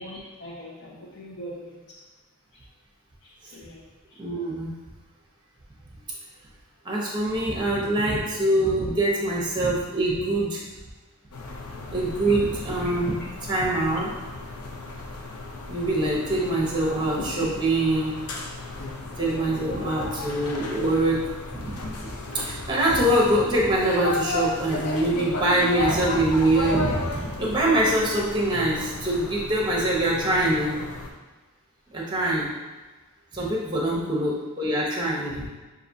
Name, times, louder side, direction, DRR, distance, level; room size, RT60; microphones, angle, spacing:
voice 1, 0.0-2.0 2.5-2.7 3.2-3.8 4.1-4.2 12.3-12.4 12.8-12.9 13.8-13.9 33.8-34.2, left 1 dB, 50° left, -5 dB, 1.1 m, -42 dB
voice 2, 4.2-4.7 6.8-10.6 11.9-13.2 13.5-14.1 15.7-18.1 19.2-21.2 21.5-22.1 22.4-30.7 31.9-32.5 33.3-35.5, right 1 dB, 20° right, -3 dB, 0.9 m, -24 dB
sound 1, 11.3-31.1, left 2 dB, 85° left, 0.6 m, -34 dB
6.5 x 2.7 x 2.7 m, 1.2 s
head